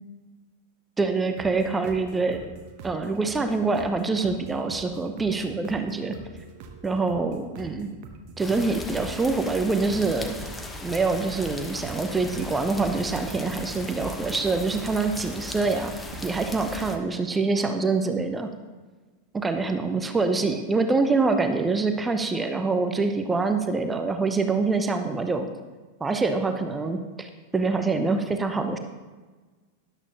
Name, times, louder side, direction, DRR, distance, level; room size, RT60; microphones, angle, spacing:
voice 1, 1.0-2.4 2.8-6.2 6.8-7.9 8.4-10.4 10.8-15.9 16.2-18.5 19.3-25.5 26.0-28.8, right 3 dB, 15° right, 7 dB, 0.7 m, -25 dB
sound 1, 1.4-16.5, right 4 dB, 45° right, 1.1 m, -45 dB
sound 2, 8.4-17.0, left 2 dB, 10° left, 1.0 m, -38 dB
13.0 x 11.0 x 2.9 m, 1.3 s
figure-of-eight pair, 90°, 0 cm